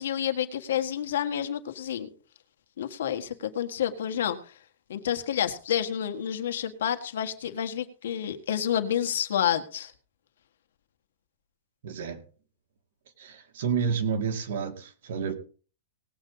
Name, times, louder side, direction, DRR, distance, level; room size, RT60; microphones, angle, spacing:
voice 1, 0.0-2.1 2.8-4.4 4.9-9.9, left 9 dB, 75° left, 1.7 m, -29 dB
voice 2, 11.8-12.2 13.2-15.3, right 6 dB, 60° right, 2.4 m, -30 dB
19.0 x 8.2 x 4.0 m
supercardioid pair, 170°, 0 cm